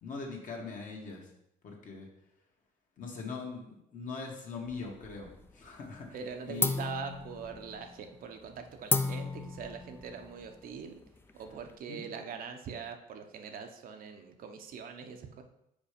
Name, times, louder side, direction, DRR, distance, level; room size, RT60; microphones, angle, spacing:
voice 1, 0.0-1.3 1.6-2.1 3.0-6.2 6.5-6.7 11.9-12.0, left 4 dB, 50° left, 0 dB, 1.6 m, -41 dB
sound 1, 4.6-5.5 5.8-6.2 6.6-11.8, left 3 dB, 15° left, 0.5 m, -35 dB
voice 2, 6.1-11.0 11.3-15.4, right 6 dB, 60° right, 5 dB, 0.8 m, -43 dB
5.1 x 4.5 x 5.1 m, 0.81 s
cardioid pair, 110°, 17 cm